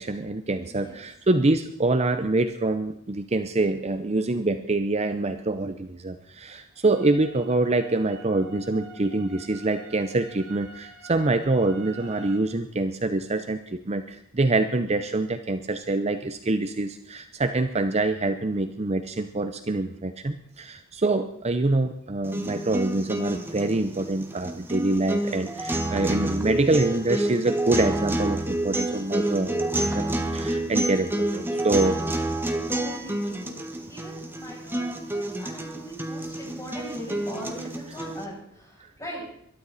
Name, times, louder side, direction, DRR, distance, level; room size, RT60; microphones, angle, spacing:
voice 1, 0.0-32.0, right 2 dB, 30° right, 9 dB, 0.7 m, -25 dB
voice 2, 0.7-1.0 31.8-31.9 32.2-33.6 33.9-39.2, equal, 15° left, -4 dB, 7.6 m, -40 dB
sound 1, 6.9-12.4, right 3 dB, 90° right, 3.6 m, -46 dB
sound 2, 22.2-38.2, right 1 dB, 10° right, 1.4 m, -29 dB
21.5 x 12.5 x 4.1 m, 0.70 s
head